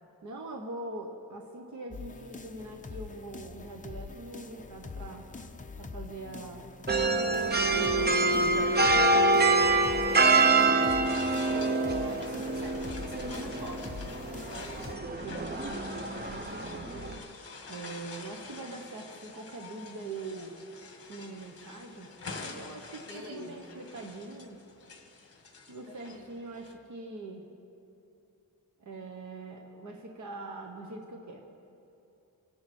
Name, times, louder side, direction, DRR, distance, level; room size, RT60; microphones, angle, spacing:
voice 1, 0.2-5.3 5.8-6.7 7.3-8.7 15.2-16.9 17.7-20.5 21.0-24.6 25.7-27.5 28.8-31.5, right 2 dB, 50° right, 2 dB, 1.2 m, -43 dB
sound 1, 1.9-14.9, left 4 dB, 20° left, 0.6 m, -44 dB
sound 2, 6.9-17.2, right 3 dB, 25° right, 0.7 m, -26 dB
sound 3, 9.2-26.7, left 4 dB, 40° left, 1.7 m, -47 dB
voice 2, 9.9-13.9 14.3-15.1 23.1-23.6 25.9-26.3, equal, 85° right, 0 dB, 2.4 m, -46 dB
28.0 x 11.0 x 4.4 m, 2.8 s
wide cardioid pair, 175°, 38 cm